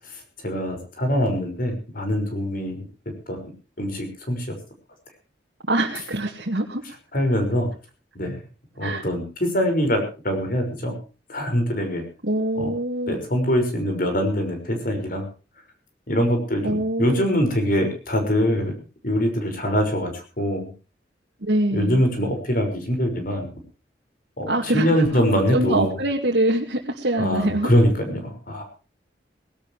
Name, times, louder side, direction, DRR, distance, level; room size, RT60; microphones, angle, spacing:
voice 1, 0.1-2.8 3.3-3.4 3.8-4.5 7.1-7.7 8.1-8.4 8.8-10.9 11.3-12.0 12.6-12.7 13.1-15.3 16.1-18.7 19.0-20.7 21.7-23.5 24.4-25.9 27.2-28.6, equal, 50° left, 5 dB, 5.9 m, -23 dB
voice 2, 5.7-6.8 8.8-9.0 12.2-13.2 16.6-17.3 21.4-22.0 24.5-25.2 25.5-27.7, right 1 dB, 65° right, -2 dB, 2.2 m, -24 dB
19.5 x 17.5 x 3.3 m, 0.34 s
head